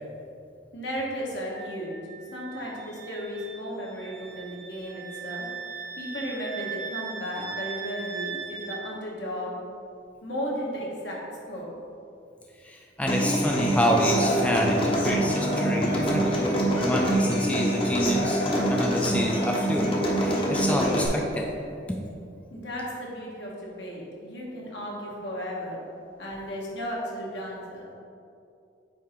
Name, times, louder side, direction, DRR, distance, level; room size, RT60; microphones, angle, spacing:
voice 1, 0.7-2.0 2.3-5.5 6.0-9.6 10.2-11.2 11.5-11.7 22.5-23.5 23.8-25.8 26.2-27.9, equal, 70° left, -4 dB, 1.4 m, -34 dB
Wind instrument woodwind instrument, 1.5-8.8, right 6 dB, 75° right, 0.9 m, -39 dB
voice 2, 12.6-16.5 16.8-18.4 18.7-21.5, equal, 5° left, 0 dB, 0.3 m, -27 dB
Human voice / Acoustic guitar, 13.1-21.1, right 1 dB, 30° left, 0.8 m, -25 dB
8.4 x 2.8 x 4.4 m, 2.6 s
head